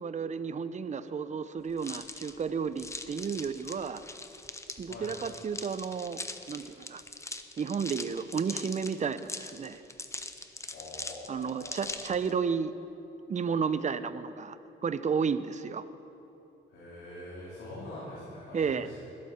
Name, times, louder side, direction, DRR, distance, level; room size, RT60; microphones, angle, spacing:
voice 1, 0.0-4.0 4.8-6.2 6.5-7.0 7.6-9.8 11.3-12.7 13.3-14.6 14.8-15.8 18.5-18.9, right 6 dB, 35° right, 13 dB, 0.7 m, -32 dB
sound 1, 1.8-12.3, left 2 dB, 15° left, 0.9 m, -42 dB
voice 2, 10.6-12.3 16.7-19.0, left 1 dB, 80° left, -9 dB, 4.2 m, -44 dB
20.0 x 12.0 x 4.4 m, 3.0 s
cardioid pair, 90°, 20 cm